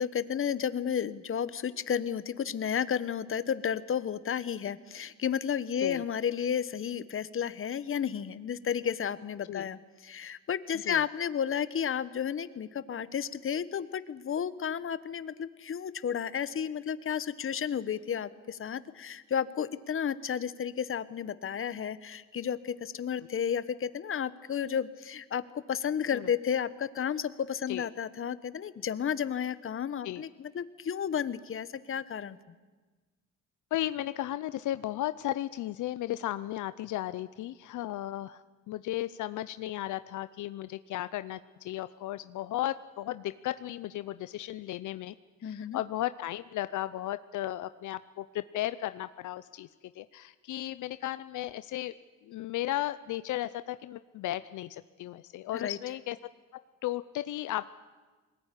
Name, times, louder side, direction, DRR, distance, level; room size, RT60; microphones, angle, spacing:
voice 1, 0.0-32.4 45.4-45.8 55.5-55.8, left 8 dB, 45° left, 15 dB, 1.1 m, -32 dB
voice 2, 33.7-45.1 45.4-49.7 49.9-51.9 52.2-56.2 56.8-57.7, left 14 dB, 75° left, 14 dB, 0.7 m, -35 dB
21.0 x 19.0 x 9.9 m, 1.3 s
cardioid pair, 90°, 30 cm